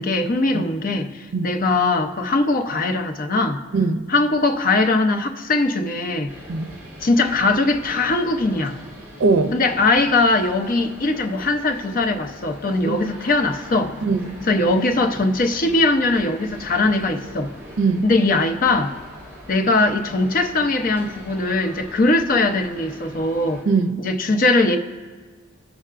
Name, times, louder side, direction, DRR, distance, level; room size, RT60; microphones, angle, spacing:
voice 1, 0.0-3.6 4.1-6.3 7.0-8.8 9.5-13.9 14.5-17.5 18.0-18.9 19.5-23.6 24.0-24.8, left 2 dB, 45° left, 0.6 m, -20 dB
voice 2, 3.7-4.1 6.5-6.7 9.2-9.6 12.9-13.0 14.0-14.4 17.8-18.1 23.6-24.1, right 4 dB, 75° right, 0.5 m, -20 dB
sound 1, 6.3-23.6, equal, 15° right, 1.7 m, -42 dB
16.5 x 5.5 x 2.4 m
head